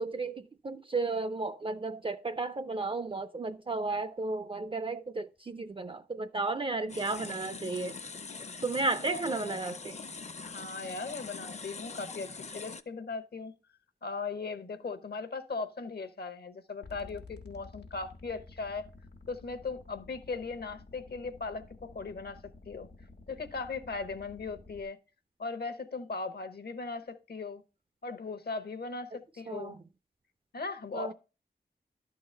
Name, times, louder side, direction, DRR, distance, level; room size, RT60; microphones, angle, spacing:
voice 1, 0.0-8.0 8.6-10.0 29.5-29.8 30.9-31.1, right 3 dB, 30° right, 0.3 m, -33 dB
sound 1, 6.9-12.8, left 4 dB, 40° left, 0.5 m, -43 dB
voice 2, 9.1-9.6 10.4-12.3 12.5-13.5 14.0-18.9 19.3-22.4 22.7-22.9 23.3-25.0 25.4-27.6 28.0-29.7 30.5-31.1, left 4 dB, 70° left, 0.9 m, -38 dB
sound 2, 16.8-24.8, left 3 dB, 90° left, 1.2 m, -52 dB
11.5 x 3.9 x 5.3 m
wide cardioid pair, 95°, 17 cm